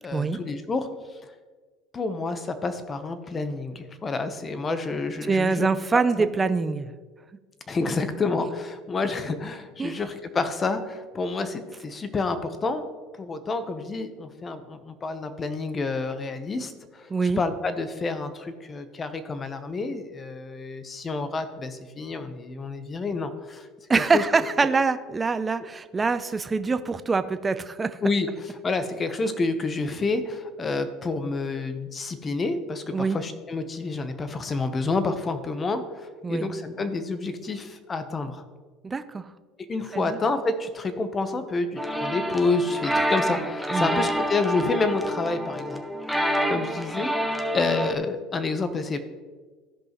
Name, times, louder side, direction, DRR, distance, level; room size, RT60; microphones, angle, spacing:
voice 1, 0.0-0.9 1.9-5.7 7.7-12.8 13.2-23.7 23.9-24.2 28.0-38.4 39.6-45.8 46.5-47.1 47.5-49.0, left 3 dB, 30° left, 10 dB, 0.9 m, -29 dB
voice 2, 5.3-6.9 9.8-10.0 17.1-17.4 23.9-28.0 32.9-33.2 36.2-36.5 38.8-39.2 39.9-40.2 43.7-44.0, right 4 dB, 20° right, 11 dB, 0.5 m, -24 dB
sound 1, 41.8-47.9, right 1 dB, ahead, 1.0 m, -27 dB
15.0 x 5.4 x 3.1 m, 1.4 s
supercardioid pair, 100°, 0 cm